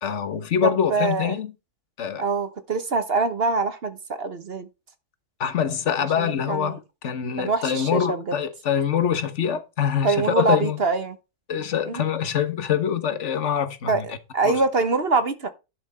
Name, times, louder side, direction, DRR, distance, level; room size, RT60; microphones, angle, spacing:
voice 1, 0.0-1.5 2.0-2.2 5.4-10.8 11.5-14.0 14.4-14.6, left 8 dB, 50° left, 1.4 m, -25 dB
voice 2, 0.6-1.4 2.2-4.7 6.2-6.8 7.4-8.2 10.0-11.1 11.8-12.1 13.9-15.5, right 3 dB, 45° right, 1.1 m, -24 dB
11.5 x 5.9 x 4.2 m
omnidirectional pair, 1.6 m